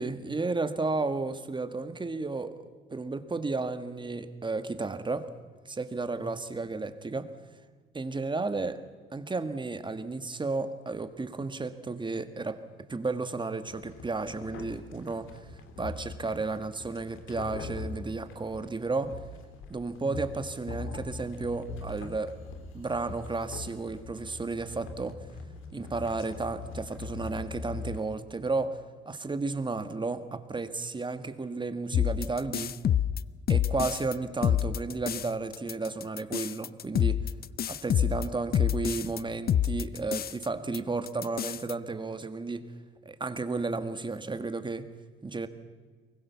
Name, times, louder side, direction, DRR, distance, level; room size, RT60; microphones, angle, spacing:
voice 1, 0.0-2.6 2.9-5.3 5.6-7.4 7.9-8.8 9.1-19.2 19.7-22.4 22.7-25.3 25.7-32.8 33.5-37.3 37.7-42.7 43.0-44.9 45.2-45.5, right 3 dB, 25° right, 10 dB, 1.7 m, -33 dB
sound 1, 13.7-28.0, left 4 dB, 85° left, 2.7 m, -42 dB
sound 2, 31.9-34.1 34.4-35.3 35.5-39.2 39.5-40.4 40.7-40.8 41.1-41.7, left 9 dB, 50° left, 0.6 m, -27 dB
23.5 x 21.0 x 7.1 m, 1.5 s
cardioid pair, 90°, 20 cm